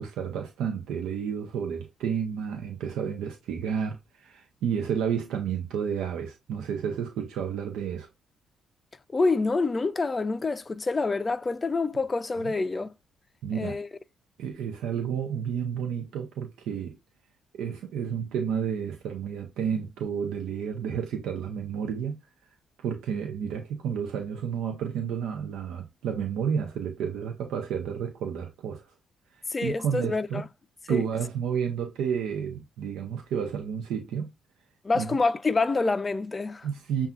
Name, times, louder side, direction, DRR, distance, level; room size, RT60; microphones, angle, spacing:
voice 1, 0.0-8.1 13.4-13.8 14.4-17.0 17.5-22.2 22.8-28.8 29.6-30.4 30.9-34.3 34.9-35.1 36.6-37.1, right 7 dB, 85° right, 0.7 m, -31 dB
voice 2, 9.1-12.9 13.5-13.9 29.5-30.5 30.9-31.0 34.8-36.7, left 3 dB, 25° left, 0.4 m, -27 dB
6.8 x 2.4 x 2.4 m
cardioid pair, 90°, 0 cm